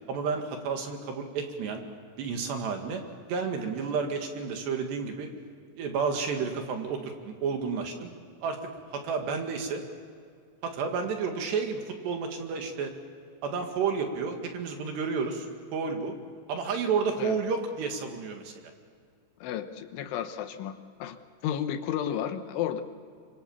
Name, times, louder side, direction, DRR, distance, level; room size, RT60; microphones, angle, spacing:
voice 1, 0.1-1.8 2.2-3.0 3.3-5.3 5.8-8.1 8.4-8.6 8.9-9.8 10.6-12.9 13.4-15.5 15.7-16.2 16.5-18.5, right 5 dB, 65° right, 4 dB, 3.8 m, -31 dB
voice 2, 19.4-21.2 21.4-22.8, left 10 dB, 75° left, 8 dB, 3.4 m, -32 dB
25.5 x 25.0 x 7.2 m, 2.2 s
omnidirectional pair, 5.7 m